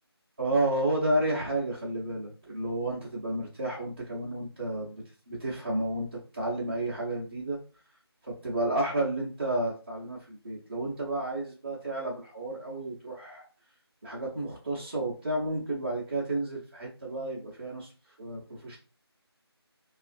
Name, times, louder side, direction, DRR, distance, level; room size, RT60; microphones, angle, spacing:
voice 1, 0.4-7.6 8.2-13.4 14.0-17.9 18.2-18.8, right 1 dB, 25° right, -8 dB, 0.6 m, -31 dB
3.2 x 2.4 x 2.5 m, 0.36 s
figure-of-eight pair, 160°, 14 cm